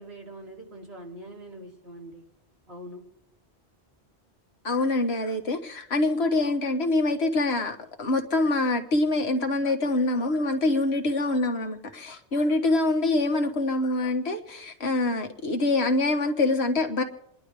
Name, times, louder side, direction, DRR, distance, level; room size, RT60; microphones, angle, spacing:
voice 1, 0.0-2.2 2.7-3.0, right 1 dB, 70° right, 3.4 m, -43 dB
voice 2, 4.6-17.0, left 2 dB, 70° left, 1.6 m, -25 dB
28.0 x 11.5 x 3.4 m
omnidirectional pair, 1.1 m